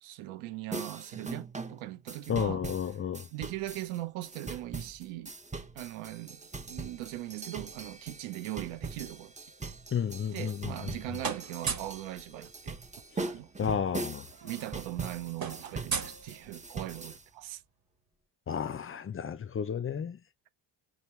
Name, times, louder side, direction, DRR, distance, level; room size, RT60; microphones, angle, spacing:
voice 1, 0.0-2.7 3.3-5.3 5.7-6.4 6.7-9.3 10.3-12.8 13.2-13.5 14.4-17.6, right 15 dB, 80° right, 0.8 m, -40 dB
sound 1, 0.7-17.2, right 3 dB, 15° right, 0.9 m, -41 dB
voice 2, 2.3-3.3 9.9-11.0 13.6-14.3 18.5-20.2, left 8 dB, 30° left, 0.5 m, -32 dB
sound 2, 10.2-10.9 11.2-12.0 13.4-13.5 13.7-13.9 14.2-16.9, right 5 dB, 50° right, 1.9 m, -38 dB
4.3 x 3.0 x 3.1 m
supercardioid pair, 70°, 47 cm